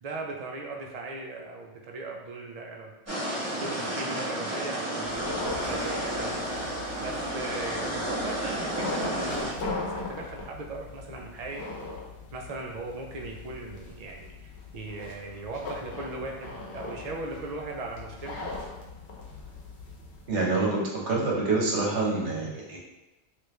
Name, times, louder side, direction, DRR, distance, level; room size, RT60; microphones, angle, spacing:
voice 1, 0.0-2.9 3.5-6.4 7.0-11.7 12.3-18.5, right 2 dB, 55° right, 1 dB, 0.4 m, -38 dB
sound 1, 3.1-9.5, right 1 dB, 15° right, 0.8 m, -31 dB
sound 2, 5.0-20.3, left 3 dB, 65° left, 1.0 m, -40 dB
voice 2, 20.3-22.8, right 3 dB, 75° right, -4 dB, 1.2 m, -26 dB
3.2 x 2.5 x 3.1 m, 1.1 s
omnidirectional pair, 1.2 m